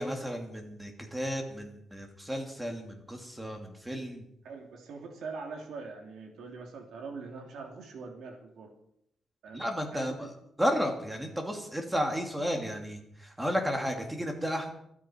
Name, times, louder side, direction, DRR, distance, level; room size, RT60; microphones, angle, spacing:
voice 1, 0.0-4.3 9.5-10.3 10.6-14.7, equal, 5° right, 3 dB, 2.6 m, -33 dB
voice 2, 4.4-8.7 9.4-9.6 9.9-10.3, right 4 dB, 80° right, 2 dB, 3.1 m, -43 dB
28.5 x 9.8 x 4.5 m, 0.74 s
wide cardioid pair, 160°, 0 cm